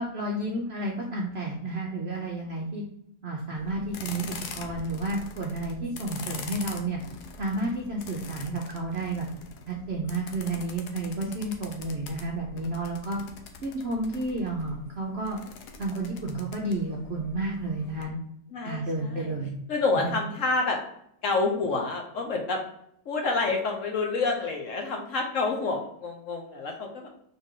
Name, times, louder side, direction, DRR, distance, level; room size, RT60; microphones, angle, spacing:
voice 1, 0.0-2.8 3.2-7.0 7.4-9.3 9.7-13.2 13.6-15.4 15.8-18.2 18.6-19.5 20.0-20.2, right 2 dB, 60° right, -1 dB, 0.7 m, -31 dB
sound 1, 3.6-18.0, left 5 dB, 80° left, 1.2 m, -44 dB
voice 2, 18.5-19.3 19.7-20.8 21.2-22.6 23.1-27.1, left 3 dB, 60° left, 2 dB, 1.0 m, -28 dB
4.0 x 3.4 x 3.7 m, 0.74 s
omnidirectional pair, 1.7 m